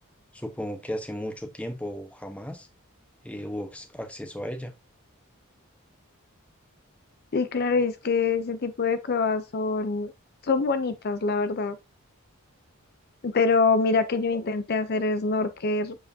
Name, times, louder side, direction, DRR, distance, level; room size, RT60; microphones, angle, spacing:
voice 1, 0.3-2.7 3.2-4.7, equal, 5° left, 1.0 m, -35 dB
voice 2, 7.3-10.1 10.4-11.8 13.2-15.9, left 4 dB, 45° left, 0.6 m, -25 dB
7.5 x 4.8 x 2.7 m
head